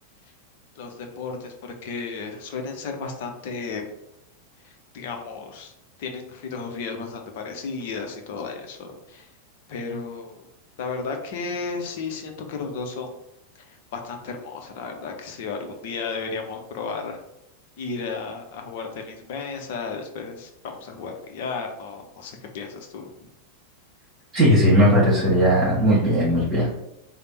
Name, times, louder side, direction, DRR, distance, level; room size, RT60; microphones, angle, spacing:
voice 1, 0.8-3.9 4.6-5.7 6.0-9.3 9.7-10.5 10.8-13.2 13.7-17.2 17.8-23.3, left 4 dB, 50° left, 3 dB, 0.6 m, -34 dB
voice 2, 24.3-26.7, equal, 20° right, -7 dB, 1.4 m, -18 dB
3.3 x 2.1 x 4.2 m, 0.85 s
figure-of-eight pair, 90°, 0 cm